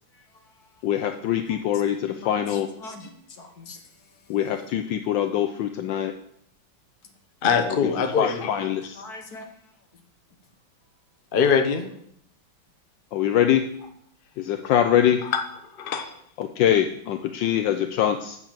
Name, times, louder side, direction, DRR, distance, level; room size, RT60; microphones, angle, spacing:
voice 1, 0.1-0.8 2.0-4.4 9.0-10.0, left 2 dB, 55° left, 1.9 m, -44 dB
voice 2, 0.8-2.7 4.3-6.1 7.8-7.9 8.2-9.0 13.1-13.6 14.4-15.2 16.4-18.4, left 10 dB, 75° left, 1.3 m, -23 dB
voice 3, 7.4-8.5 11.3-11.9 15.2-15.4 15.8-16.1, left 6 dB, 35° left, 1.0 m, -22 dB
8.0 x 7.1 x 7.4 m
omnidirectional pair, 2.1 m